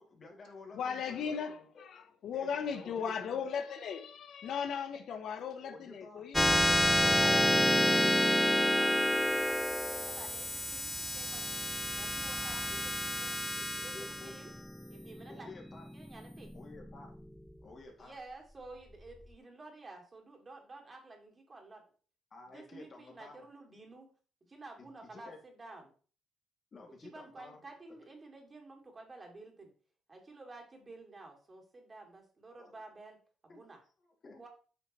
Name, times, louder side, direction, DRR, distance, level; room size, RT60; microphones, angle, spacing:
voice 1, 0.0-1.8 2.3-3.5 5.6-6.3 7.8-8.1 12.3-12.9 13.9-14.3 15.3-15.9 16.5-17.1 17.6-18.2 22.3-23.5 24.8-25.4 26.7-27.6 32.6-32.8 33.5-33.6 34.0-34.4, left 3 dB, 45° left, 2.3 m, -52 dB
voice 2, 0.7-7.4 8.2-8.3, left 7 dB, 70° left, 0.8 m, -38 dB
sound 1, 6.3-17.2, left 1 dB, 5° left, 0.4 m, -29 dB
voice 3, 7.0-7.6 7.9-11.4 11.9-14.5 14.9-15.5 15.9-16.5 18.0-21.8 22.4-24.1 24.5-25.9 26.9-29.7 30.1-33.8 34.4-34.5, right 2 dB, 30° right, 2.4 m, -51 dB
8.7 x 5.7 x 3.0 m
cardioid pair, 90°, 0 cm